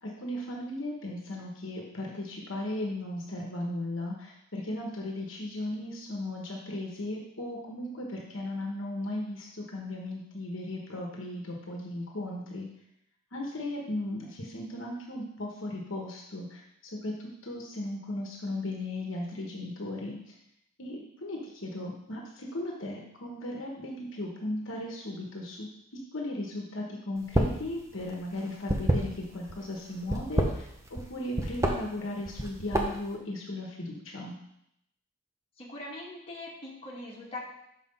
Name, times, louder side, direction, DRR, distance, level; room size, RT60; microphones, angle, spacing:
voice 1, 0.0-12.7 13.3-20.2 20.8-25.7 26.1-34.3, left 1 dB, 65° left, -1 dB, 1.2 m, -36 dB
sound 1, 27.2-27.7 27.9-29.5 30.0-31.1 31.4-31.7 32.3-33.1, right 1 dB, 15° right, 0.8 m, -27 dB
voice 2, 35.6-37.4, left 2 dB, 25° left, -5 dB, 1.9 m, -41 dB
6.1 x 5.9 x 5.4 m, 0.77 s
head